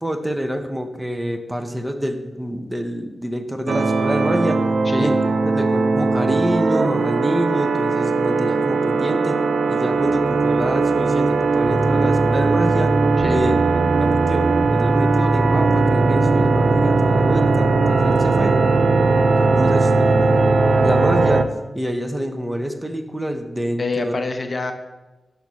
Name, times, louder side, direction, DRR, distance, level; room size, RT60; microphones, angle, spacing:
voice 1, 0.0-4.7 5.0-5.2 5.4-9.4 9.7-13.0 13.3-18.5 19.3-20.4 20.8-21.5 21.7-24.1, equal, 15° right, 7 dB, 0.7 m, -27 dB
sound 1, 3.7-21.4, right 3 dB, 70° right, 0.4 m, -18 dB
voice 2, 23.8-24.7, left 3 dB, 50° left, 8 dB, 0.6 m, -25 dB
5.8 x 4.8 x 4.1 m, 1.1 s
supercardioid pair, 40°, 0 cm